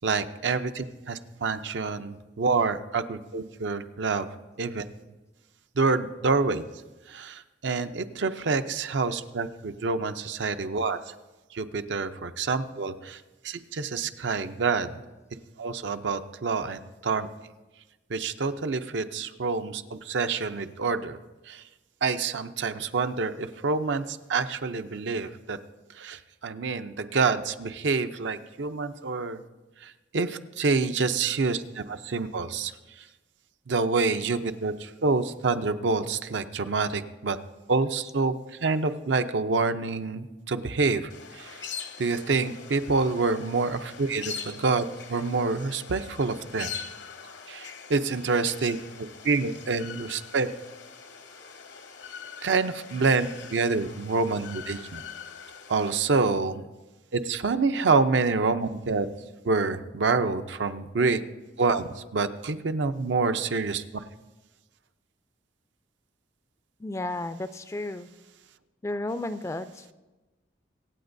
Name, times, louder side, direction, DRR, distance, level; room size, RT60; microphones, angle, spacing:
voice 1, 0.0-4.3 4.6-4.8 5.8-6.6 7.1-11.0 11.5-13.2 13.4-14.9 15.6-17.3 18.1-21.2 21.5-21.6 22.0-25.6 26.0-29.4 30.1-32.7 33.7-37.4 37.7-38.3 38.6-41.1 41.4-41.5 42.0-46.7 47.5-50.5 52.4-55.0 55.7-56.6 57.1-59.1 59.4-61.2 61.6-63.8, right 4 dB, 70° right, 9 dB, 0.6 m, -27 dB
sound 1, 41.1-55.9, left 6 dB, 70° left, 0.8 m, -42 dB
voice 2, 66.8-68.1 68.8-69.9, left 2 dB, 15° left, 12 dB, 0.3 m, -33 dB
24.0 x 8.7 x 2.6 m, 1.2 s
head